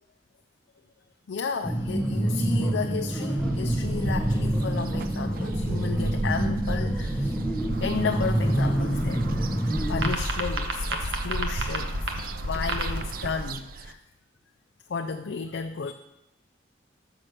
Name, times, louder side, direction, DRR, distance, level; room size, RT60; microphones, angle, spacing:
voice 1, 1.3-7.4 7.8-9.3 9.9-14.0 14.9-15.9, left 5 dB, 80° left, 6 dB, 0.4 m, -33 dB
sound 1, 1.6-10.1, right 1 dB, ahead, 0.7 m, -27 dB
sound 2, 3.4-13.9, right 2 dB, 50° right, 0.4 m, -36 dB
sound 3, 7.7-13.5, right 1 dB, 75° right, 1.1 m, -32 dB
6.2 x 5.9 x 6.5 m, 0.90 s
head